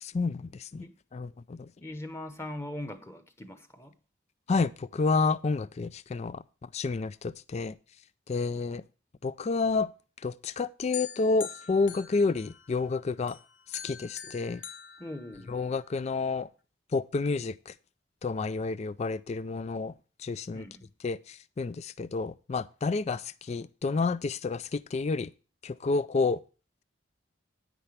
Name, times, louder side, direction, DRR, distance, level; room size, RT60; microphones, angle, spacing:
voice 1, 0.0-0.8 1.1-1.7 4.5-7.7 8.3-8.8 9.2-9.9 10.2-13.4 13.7-14.6 15.5-16.5 16.9-17.7 18.2-19.9 20.2-20.6 21.0-25.3 25.6-26.4, left 4 dB, 35° left, 0.3 m, -30 dB
voice 2, 1.8-3.9 15.0-15.5 20.5-20.9, left 1 dB, 15° left, 1.1 m, -40 dB
sound 1, 10.9-12.9 13.3-15.8, left 8 dB, 85° left, 1.3 m, -43 dB
10.0 x 9.5 x 3.4 m
head